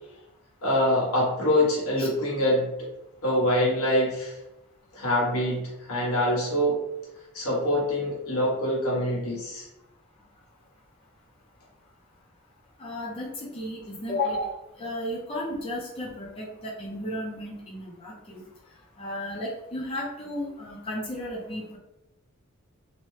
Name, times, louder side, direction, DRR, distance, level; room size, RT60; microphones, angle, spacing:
voice 1, 0.6-2.7 3.2-4.4 4.9-6.8 7.3-9.7, left 1 dB, 85° left, -4 dB, 1.1 m, -25 dB
voice 2, 12.8-18.5 19.0-21.8, left 1 dB, 25° left, -5 dB, 0.5 m, -33 dB
2.7 x 2.2 x 3.1 m, 0.91 s
head